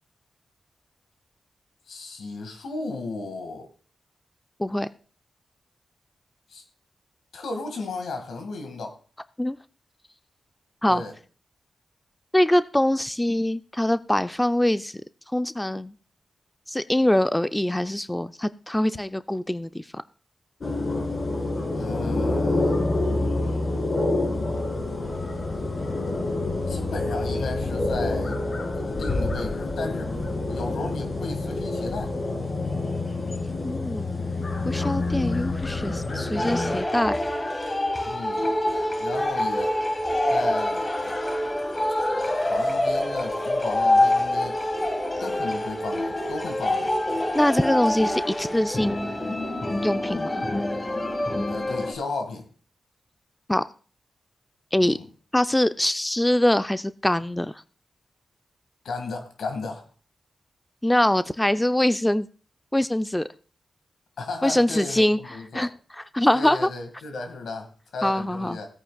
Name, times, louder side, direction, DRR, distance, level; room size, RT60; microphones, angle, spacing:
voice 1, 1.9-3.7 6.5-6.6 7.3-9.0 10.9-11.1 21.7-22.9 26.7-28.4 28.7-30.2 30.5-32.1 38.0-38.5 39.0-39.7 40.3-41.2 42.1-44.6 45.2-47.0 51.5-52.5 54.8-55.1 58.8-59.8 64.2-65.7 66.3-68.7, left 3 dB, 85° left, 1.9 m, -34 dB
voice 2, 12.3-15.0 15.3-15.9 16.7-20.0 33.6-34.1 34.6-37.2 47.3-49.0 49.8-50.4 53.5-53.6 54.7-55.0 55.3-57.6 60.8-62.3 62.7-63.3 64.4-65.2 65.5-65.7 66.0-66.7 68.0-68.6, left 1 dB, 10° left, 0.4 m, -23 dB
sound 1, 20.6-36.8, left 2 dB, 55° left, 2.3 m, -27 dB
sound 2, 36.4-51.9, left 1 dB, 30° left, 1.7 m, -26 dB
17.0 x 8.8 x 2.3 m
cardioid pair, 55°, 0 cm